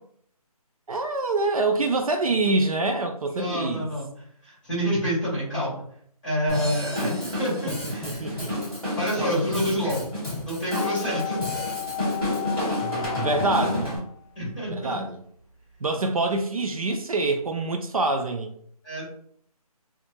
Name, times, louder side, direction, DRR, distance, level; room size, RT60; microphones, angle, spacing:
voice 1, 0.9-3.9 7.0-7.1 7.7-8.5 9.7-9.8 13.2-14.0 14.7-15.2 15.8-18.5, right 2 dB, 60° right, 6 dB, 0.4 m, -26 dB
voice 2, 3.4-5.8 6.2-8.4 9.0-10.0 10.5-11.4 14.3-15.0 18.8-19.0, equal, 15° left, -9 dB, 1.5 m, -28 dB
Drum kit / Drum, 6.5-14.0, left 1 dB, 5° right, 1.3 m, -30 dB
sound 1, 10.7-14.8 15.1-15.2, left 15 dB, 30° left, 1.1 m, -34 dB
2.6 x 2.3 x 2.9 m, 0.63 s
hypercardioid pair, 175°, 20 cm